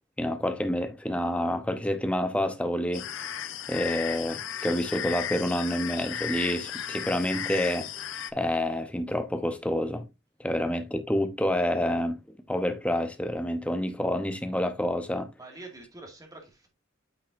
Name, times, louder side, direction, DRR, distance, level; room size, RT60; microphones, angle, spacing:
voice 1, 0.2-3.1 3.7-7.9 8.3-10.1 10.4-12.2 12.5-15.3, left 1 dB, 5° left, 0.8 m, -28 dB
sound 1, 2.9-8.3, left 9 dB, 65° left, 0.6 m, -35 dB
voice 2, 15.4-16.7, right 2 dB, 20° right, 2.0 m, -46 dB
8.7 x 5.6 x 2.5 m
head